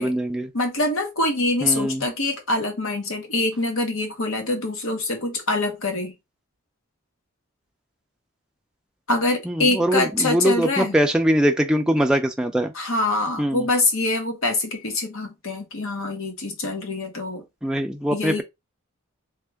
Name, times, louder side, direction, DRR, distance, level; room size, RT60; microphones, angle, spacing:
voice 1, 0.0-0.5 1.6-2.1 9.4-12.7 13.4-13.7 17.6-18.4, equal, 5° right, 0.4 m, -22 dB
voice 2, 0.5-6.1 9.1-10.9 12.7-17.4 18.1-18.4, left 2 dB, 70° left, 1.1 m, -24 dB
3.6 x 2.4 x 3.4 m
head